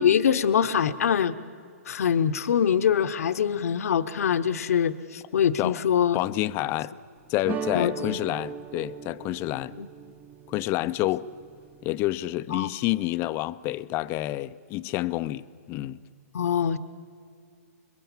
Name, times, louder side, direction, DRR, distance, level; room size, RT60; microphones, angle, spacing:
voice 1, 0.0-1.3 1.9-6.2 7.7-8.2 9.8-9.9 12.5-12.7 16.3-16.8, left 8 dB, 70° left, 0.9 m, -24 dB
voice 2, 6.1-6.9 7.3-9.7 10.5-11.3 11.8-16.0, left 16 dB, 30° left, 0.5 m, -28 dB
sound 1, 7.4-12.3, right 5 dB, 20° right, 0.8 m, -38 dB
26.0 x 22.0 x 7.3 m
hypercardioid pair, 135°, 8 cm